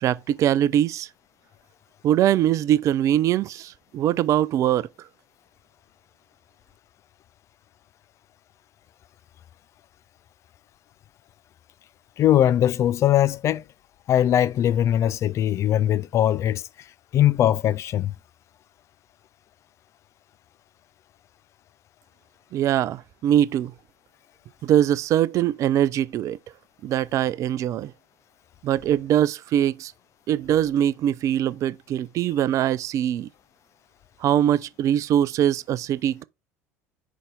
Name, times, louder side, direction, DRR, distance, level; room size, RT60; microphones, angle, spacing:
voice 1, 0.0-1.1 2.0-4.9 22.5-23.7 24.6-26.4 26.8-27.9 28.6-29.9 30.3-33.3 34.2-36.2, right 11 dB, 45° right, 0.4 m, -22 dB
voice 2, 12.2-13.6 14.1-16.6 17.1-18.1, left 11 dB, 40° left, 0.4 m, -20 dB
5.5 x 5.1 x 3.8 m
figure-of-eight pair, 65°, 8 cm